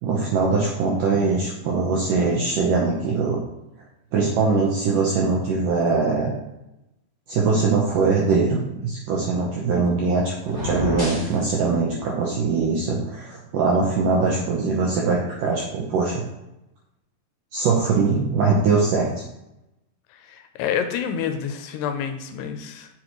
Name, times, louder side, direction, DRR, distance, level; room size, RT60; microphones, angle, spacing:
voice 1, 0.0-3.4 4.1-6.3 7.3-8.6 8.8-16.2 17.5-19.1, right 4 dB, 80° right, -3 dB, 1.9 m, -22 dB
sound 1, 10.4-11.4, left 2 dB, 20° left, 0.5 m, -28 dB
voice 2, 20.2-22.9, left 8 dB, 80° left, 7 dB, 2.6 m, -28 dB
7.7 x 6.4 x 3.1 m, 0.88 s
omnidirectional pair, 4.9 m